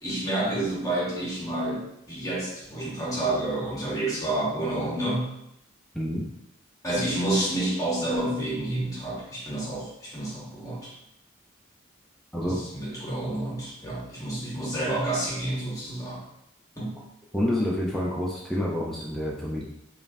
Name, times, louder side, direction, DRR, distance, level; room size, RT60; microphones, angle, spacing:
voice 1, 0.0-5.3 6.8-11.0 12.4-16.2 16.8-17.0, right 1 dB, 15° left, -6 dB, 1.1 m, -29 dB
voice 2, 17.3-19.6, left 1 dB, ahead, -5 dB, 0.4 m, -28 dB
5.1 x 2.5 x 2.4 m, 0.81 s
head